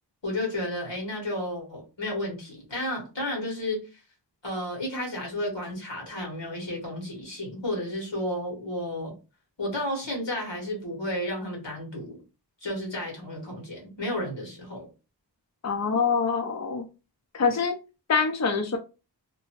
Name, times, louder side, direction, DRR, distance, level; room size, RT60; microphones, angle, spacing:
voice 1, 0.2-4.0 4.4-9.1 9.6-12.2 12.6-14.9, left 1 dB, 90° left, 0 dB, 1.5 m, -32 dB
voice 2, 15.6-16.8 17.3-17.7 18.1-18.8, left 5 dB, 40° left, 5 dB, 0.5 m, -25 dB
2.8 x 2.3 x 2.8 m, 0.30 s
wide cardioid pair, 40°, 43 cm